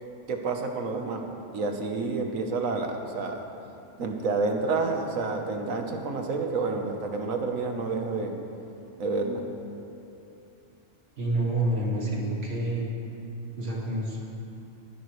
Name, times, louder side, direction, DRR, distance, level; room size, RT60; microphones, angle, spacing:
voice 1, 0.3-1.2 1.5-3.4 4.0-8.3 9.0-9.4, right 3 dB, 85° right, 3 dB, 1.5 m, -29 dB
voice 2, 11.2-12.9 13.6-14.2, right 1 dB, 60° right, -4 dB, 2.4 m, -28 dB
18.0 x 11.0 x 3.2 m, 2.8 s
omnidirectional pair, 1.4 m